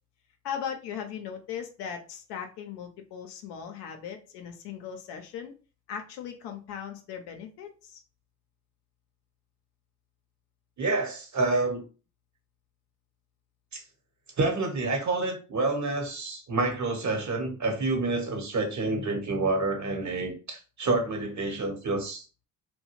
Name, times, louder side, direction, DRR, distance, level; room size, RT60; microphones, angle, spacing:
voice 1, 0.4-5.5 5.9-8.0, left 8 dB, 85° left, 4 dB, 0.5 m, -38 dB
voice 2, 10.8-11.8 13.7-13.8 14.4-22.2, right 3 dB, 45° right, 3 dB, 1.0 m, -28 dB
2.3 x 2.1 x 3.0 m, 0.35 s
supercardioid pair, 55°, 40 cm